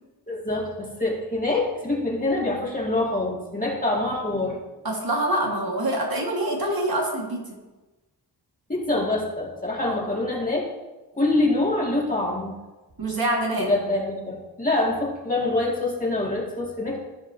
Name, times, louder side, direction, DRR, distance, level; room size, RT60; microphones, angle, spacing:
voice 1, 0.3-4.6 8.7-10.7 11.2-12.6 13.6-17.0, left 2 dB, 20° left, -3 dB, 2.4 m, -25 dB
voice 2, 4.8-7.4 9.8-10.0 13.0-13.7, right 1 dB, 60° right, -1 dB, 1.9 m, -25 dB
15.0 x 5.2 x 2.9 m, 1.1 s
cardioid pair, 60°, 41 cm